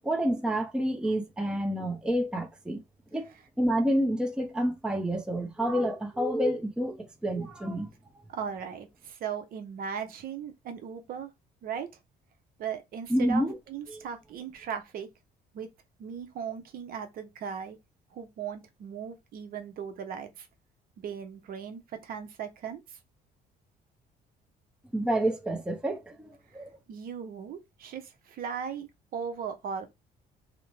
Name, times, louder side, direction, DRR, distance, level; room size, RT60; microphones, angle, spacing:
voice 1, 0.0-2.8 3.1-3.3 3.6-7.9 13.1-13.6 13.9-14.0 24.9-26.7, right 1 dB, 5° right, 0.5 m, -28 dB
voice 2, 8.3-11.3 11.6-11.9 12.6-15.1 15.5-15.7 16.0-17.8 18.1-20.5 21.0-23.0 26.9-29.9, right 7 dB, 60° right, 0.7 m, -38 dB
2.5 x 2.1 x 3.0 m
cardioid pair, 110°, 17 cm